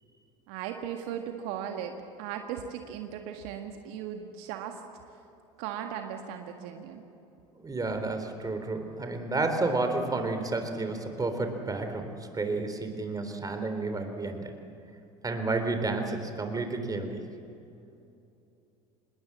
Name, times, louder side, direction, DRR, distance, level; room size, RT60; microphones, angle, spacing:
voice 1, 0.5-4.8 5.6-7.0, right 9 dB, 65° right, 4 dB, 1.8 m, -37 dB
voice 2, 7.6-14.5 15.2-17.2, right 3 dB, 20° right, 6 dB, 3.8 m, -31 dB
26.5 x 20.5 x 7.7 m, 2.7 s
hypercardioid pair, 75°, 19 cm